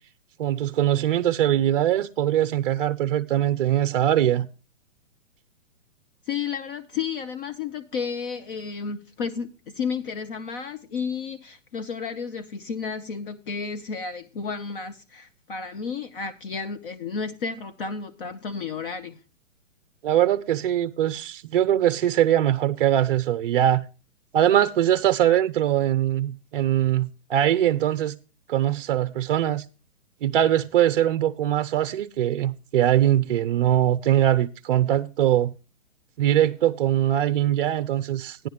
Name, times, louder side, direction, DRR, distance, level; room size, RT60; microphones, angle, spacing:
voice 1, 0.4-4.5 20.0-23.9 24.3-28.2 28.5-29.6 30.2-35.5 36.2-38.5, right 11 dB, 45° right, 0.5 m, -22 dB
voice 2, 6.3-19.2, left 5 dB, 45° left, 0.7 m, -32 dB
13.0 x 10.0 x 3.2 m
hypercardioid pair, 135°, 38 cm